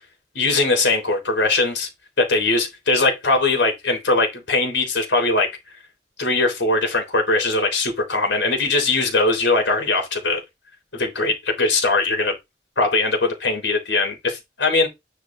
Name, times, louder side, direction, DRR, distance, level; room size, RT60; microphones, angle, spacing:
voice 1, 0.4-1.9 2.3-5.5 6.2-10.4 10.9-12.3 12.8-14.9, left 3 dB, 85° left, 3.6 m, -20 dB
9.8 x 4.9 x 3.8 m
head